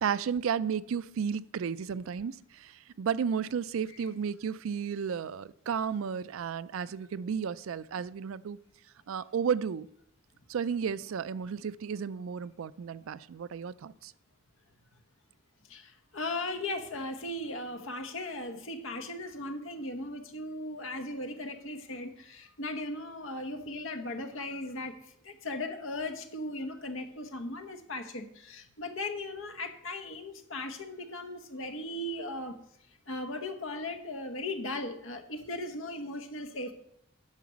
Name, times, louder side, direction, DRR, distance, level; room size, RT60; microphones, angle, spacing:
voice 1, 0.0-2.7 3.0-8.6 9.1-9.9 10.5-14.1, right 7 dB, 80° right, 0.4 m, -33 dB
voice 2, 15.7-25.0 25.2-32.6 33.1-36.7, left 2 dB, 75° left, 1.1 m, -37 dB
9.6 x 5.9 x 6.2 m
head